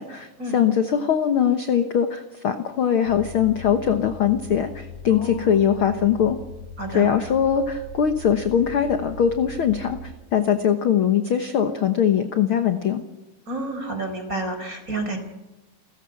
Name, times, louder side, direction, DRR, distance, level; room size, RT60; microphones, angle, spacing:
voice 1, 0.0-6.4 6.9-13.0, left 8 dB, 60° left, 7 dB, 1.4 m, -21 dB
sound 1, 3.1-10.1, left 1 dB, 30° left, 4.0 m, -40 dB
voice 2, 5.1-5.6 6.8-7.1 13.5-15.2, right 2 dB, 25° right, 6 dB, 4.7 m, -30 dB
30.0 x 15.0 x 6.0 m, 1.0 s
omnidirectional pair, 3.9 m